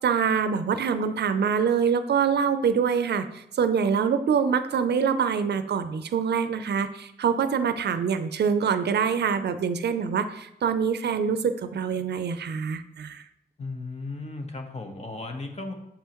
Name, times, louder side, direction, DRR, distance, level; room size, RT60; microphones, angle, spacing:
voice 1, 0.0-13.2, right 6 dB, 75° right, 11 dB, 0.5 m, -25 dB
voice 2, 13.6-15.7, left 3 dB, 40° left, 4 dB, 1.1 m, -35 dB
6.9 x 5.5 x 3.0 m, 0.84 s
cardioid pair, 75°, 18 cm